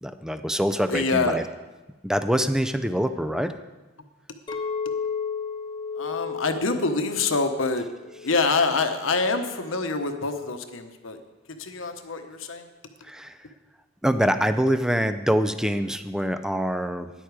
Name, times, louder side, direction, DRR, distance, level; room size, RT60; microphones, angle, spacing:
voice 1, 0.0-1.4 2.0-3.5 13.0-13.4 14.0-17.1, equal, 5° right, 10 dB, 0.5 m, -25 dB
voice 2, 0.9-1.4 6.0-7.9 8.2-11.2 11.5-12.7, left 3 dB, 75° left, 7 dB, 1.1 m, -26 dB
Chink clink, 4.5-8.8 9.3-9.7, left 6 dB, 25° left, 0.8 m, -34 dB
13.0 x 10.0 x 4.8 m, 1.2 s
head